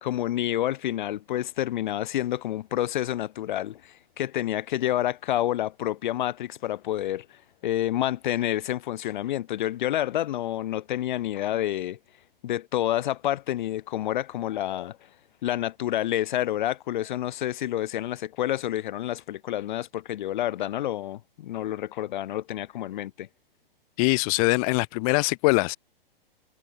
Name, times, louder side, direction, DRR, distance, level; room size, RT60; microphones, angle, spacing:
voice 1, 0.0-7.3 7.6-12.0 12.4-15.0 15.4-23.3, left 13 dB, 55° left, 1.2 m, -28 dB
voice 2, 24.0-25.8, left 28 dB, 40° left, 2.3 m, -22 dB
figure-of-eight pair, 120°, 29 cm